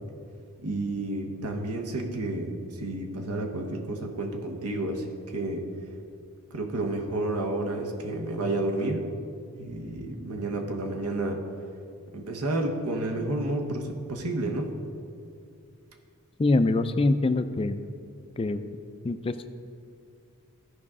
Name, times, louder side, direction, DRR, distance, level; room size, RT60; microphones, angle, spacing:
voice 1, 0.6-5.1 5.3-5.7 6.5-9.0 9.6-11.4 12.1-14.7, right 2 dB, 85° right, 3 dB, 1.0 m, -30 dB
voice 2, 16.4-17.8 18.4-18.6 19.0-19.5, left 2 dB, 25° left, 10 dB, 0.3 m, -24 dB
14.0 x 5.0 x 3.7 m, 2.4 s
head